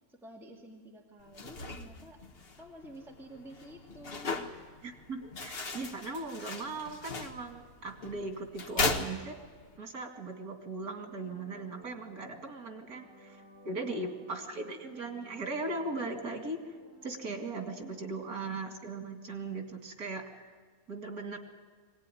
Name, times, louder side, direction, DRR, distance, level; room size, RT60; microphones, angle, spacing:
voice 1, 0.1-2.2 2.6-4.4, right 1 dB, ahead, -1 dB, 2.2 m, -50 dB
sound 1, 1.2-9.8, left 3 dB, 40° left, 1.6 m, -38 dB
voice 2, 4.8-9.3 9.8-16.8 17.0-20.5 20.9-21.4, right 3 dB, 90° right, 4 dB, 2.7 m, -39 dB
sound 2, 10.6-18.5, left 1 dB, 20° right, 7.6 m, -56 dB
23.0 x 18.0 x 9.9 m, 1.5 s
omnidirectional pair, 1.5 m